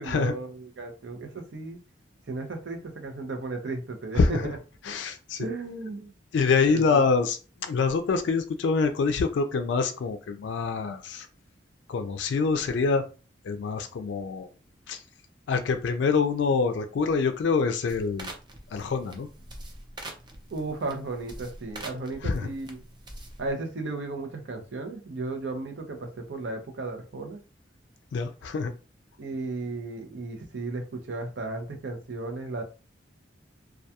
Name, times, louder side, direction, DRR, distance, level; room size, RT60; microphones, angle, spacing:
voice 1, 0.0-1.8 2.3-4.6 5.4-6.1 6.7-7.1 20.5-22.8 23.4-27.4 29.2-32.6, right 3 dB, 70° right, 4 dB, 0.6 m, -34 dB
voice 2, 4.1-4.5 4.9-5.5 6.3-11.3 11.9-13.0 13.4-14.5 14.9-15.0 15.5-18.3 18.7-19.3 22.2-22.5 28.1-28.7, left 4 dB, 75° left, 7 dB, 0.3 m, -25 dB
sound 1, 17.9-23.5, right 1 dB, 25° right, 0.4 m, -44 dB
2.3 x 2.2 x 2.7 m, 0.34 s
head